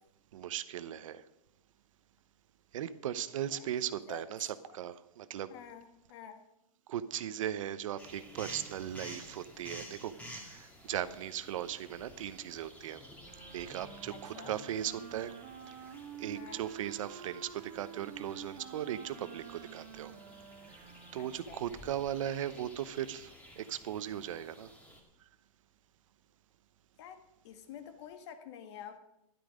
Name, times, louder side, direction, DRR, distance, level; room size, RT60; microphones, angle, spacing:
voice 1, 0.3-1.3 2.7-5.5 6.9-13.0 13.5-15.3 16.2-20.1 20.7-24.7 25.2-25.3, right 11 dB, 60° right, 13 dB, 0.9 m, -38 dB
voice 2, 5.5-5.8 6.1-6.4 14.3-14.5 16.3-16.7 21.2-21.6 27.0-27.2 27.4-29.0, left 8 dB, 50° left, 8 dB, 1.6 m, -48 dB
sound 1, 8.0-25.0, equal, 5° left, 2.2 m, -52 dB
Wind instrument woodwind instrument, 13.2-21.7, right 8 dB, 35° right, 2.1 m, -49 dB
13.0 x 12.0 x 5.1 m, 0.87 s
hypercardioid pair, 150°, 19 cm